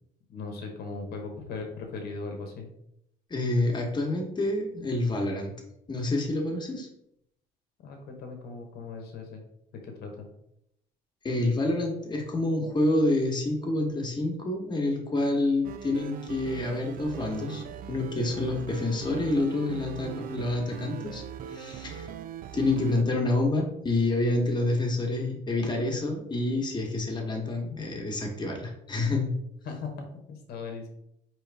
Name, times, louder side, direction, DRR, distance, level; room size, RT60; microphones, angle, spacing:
voice 1, 0.3-2.7 7.8-9.4 9.8-10.2 29.6-30.9, left 4 dB, 70° left, 3 dB, 1.1 m, -38 dB
voice 2, 3.3-5.5 5.9-6.9 11.2-21.2 21.5-22.1 22.5-29.3, left 2 dB, 25° left, 1 dB, 1.2 m, -28 dB
sound 1, 15.6-23.0, right 9 dB, 55° right, 0.4 m, -40 dB
4.8 x 3.1 x 3.4 m, 0.77 s
cardioid pair, 110°, 17 cm